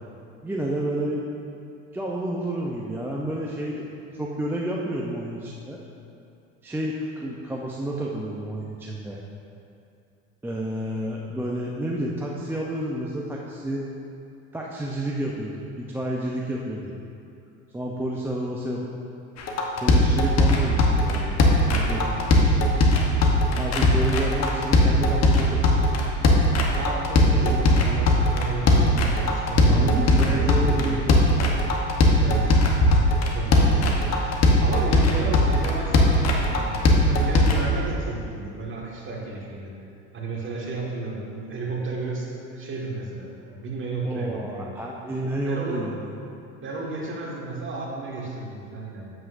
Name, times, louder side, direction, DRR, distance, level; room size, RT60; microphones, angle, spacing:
voice 1, 0.4-1.2 1.9-3.9 4.1-5.8 6.6-9.2 10.4-13.9 14.5-16.9 17.7-18.9 19.8-22.7 23.5-25.8 27.3-27.6 29.7-31.2 44.0-46.1, right 1 dB, 5° right, -3 dB, 0.6 m, -30 dB
sound 1, 19.4-37.6, left 1 dB, 40° left, 1.0 m, -19 dB
voice 2, 26.7-30.9 32.2-32.5 33.3-39.7 40.1-44.7 45.5-45.8 46.6-49.1, right 3 dB, 30° right, -3 dB, 1.7 m, -33 dB
8.2 x 7.3 x 2.6 m, 2.6 s
supercardioid pair, 95°, 38 cm